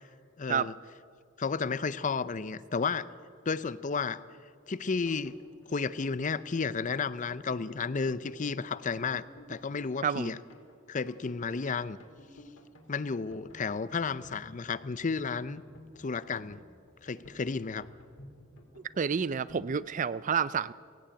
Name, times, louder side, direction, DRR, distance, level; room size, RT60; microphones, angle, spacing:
voice 1, 0.4-0.7 1.4-3.1 3.5-4.2 4.7-5.4 5.7-10.4 10.9-12.0 12.9-15.6 16.0-16.6 17.0-17.9, left 5 dB, 40° left, 16 dB, 0.6 m, -32 dB
sound 1, 4.6-19.7, left 1 dB, 70° left, 3.1 m, -53 dB
voice 2, 19.0-20.7, right 6 dB, 40° right, 18 dB, 0.4 m, -29 dB
18.5 x 17.0 x 8.9 m, 2.2 s
head